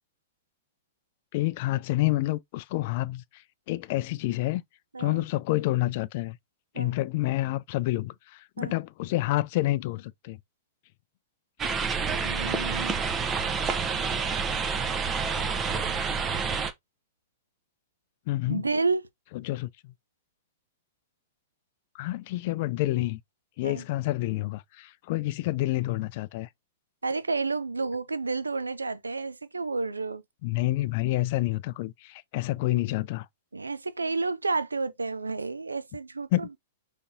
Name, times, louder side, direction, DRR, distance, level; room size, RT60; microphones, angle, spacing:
voice 1, 1.3-4.6 5.0-6.4 6.8-10.4 18.3-18.6 19.4-19.9 21.9-23.2 23.6-26.5 30.4-33.3 36.3-36.6, left 17 dB, 50° left, 0.3 m, -28 dB
voice 2, 4.9-5.2 6.7-6.9 8.6-8.8 12.2-13.0 18.5-19.1 23.6-23.8 27.0-30.2 33.5-36.6, right 3 dB, 90° right, 0.4 m, -30 dB
sound 1, 11.6-16.7, right 5 dB, 25° right, 0.7 m, -28 dB
5.3 x 3.5 x 2.6 m
figure-of-eight pair, 105°, 0 cm